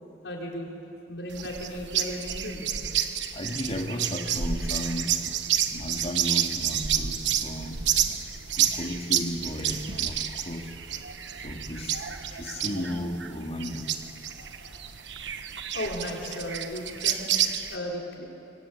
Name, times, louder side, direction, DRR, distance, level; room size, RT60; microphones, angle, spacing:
voice 1, 0.2-0.7 1.1-2.9 12.5-12.6 14.3-14.9 15.7-17.3 17.7-18.3, left 1 dB, 85° left, -1 dB, 5.0 m, -36 dB
sound 1, 1.3-17.8, right 9 dB, 85° right, 1.2 m, -30 dB
voice 2, 3.3-5.2 5.7-7.9 8.5-10.7 11.3-13.9, equal, 35° left, 2 dB, 2.5 m, -34 dB
26.0 x 22.5 x 8.8 m, 2.8 s
head